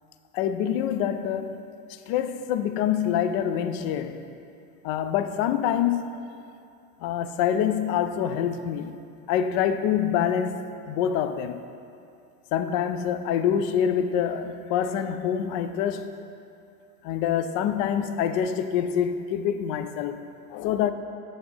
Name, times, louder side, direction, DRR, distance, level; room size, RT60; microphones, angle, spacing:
voice 1, 0.3-1.6 2.1-4.3 4.8-6.1 7.0-9.0 9.3-11.6 12.5-16.2 17.0-20.9, left 9 dB, 60° left, 0.5 m, -26 dB
7.8 x 3.9 x 3.4 m
hypercardioid pair, 80°, 48 cm